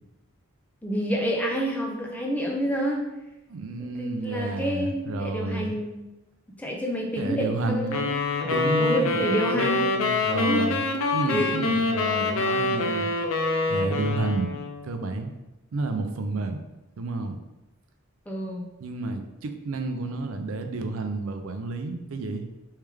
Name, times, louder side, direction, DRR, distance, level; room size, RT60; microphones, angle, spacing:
voice 1, 0.8-3.0 3.8-6.0 6.6-8.1 8.8-9.9 10.5-10.7 11.3-11.5 12.4-12.5 18.3-18.7, equal, 5° left, -1 dB, 0.5 m, -28 dB
voice 2, 3.5-5.8 7.2-8.1 8.4-10.8 11.1-13.1 13.7-14.5 14.8-15.3 15.7-16.6 17.0-17.4 18.8-22.4, right 3 dB, 70° right, 7 dB, 0.4 m, -30 dB
sound 1, 7.9-14.9, left 3 dB, 70° left, 0.4 m, -25 dB
3.3 x 3.2 x 3.3 m, 1.0 s
head